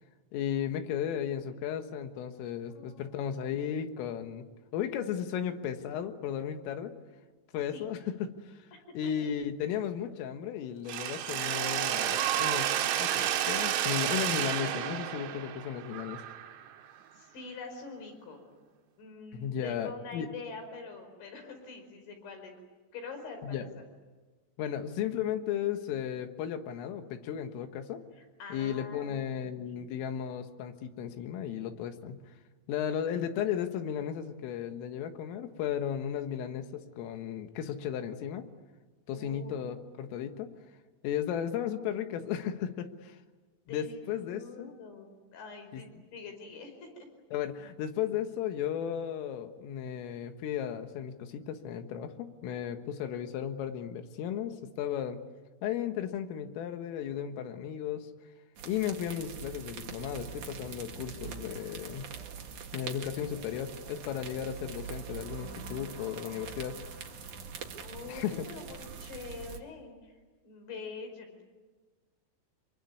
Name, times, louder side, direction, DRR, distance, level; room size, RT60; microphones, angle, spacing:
voice 1, 0.3-4.5 4.7-6.9 7.5-8.6 9.0-16.2 19.3-20.3 23.4-23.7 24.6-28.0 28.5-32.2 32.7-38.5 39.1-40.5 41.0-43.2 43.7-44.7 45.7-45.8 47.3-55.2 55.6-58.1 58.7-62.1 62.7-66.8 68.1-68.3, left 9 dB, 75° left, 7 dB, 4.0 m, -35 dB
voice 2, 2.7-3.3 7.7-7.9 8.7-9.3 17.1-18.4 19.0-22.6 22.9-23.8 28.1-29.9 39.1-39.5 43.6-47.1 66.8-67.1 67.8-71.4, left 4 dB, 60° left, 5 dB, 7.1 m, -45 dB
Mechanisms, 10.9-16.8, right 11 dB, 80° right, 4.0 m, -31 dB
sound 1, 58.6-69.6, right 6 dB, 55° right, 2.4 m, -43 dB
26.0 x 23.5 x 9.5 m, 1.3 s
omnidirectional pair, 6.0 m